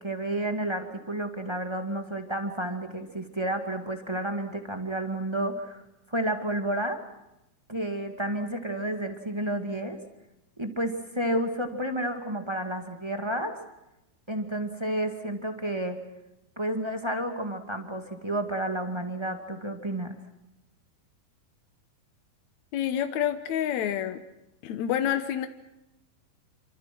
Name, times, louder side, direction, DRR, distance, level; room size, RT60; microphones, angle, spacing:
voice 1, 0.0-5.8 6.1-7.0 7.7-10.0 10.6-13.5 14.3-16.0 16.5-20.1, right 1 dB, 15° right, 5 dB, 0.9 m, -31 dB
voice 2, 22.7-24.2 24.6-25.5, left 10 dB, 70° left, 9 dB, 1.7 m, -28 dB
28.5 x 26.0 x 6.1 m, 0.91 s
omnidirectional pair, 4.7 m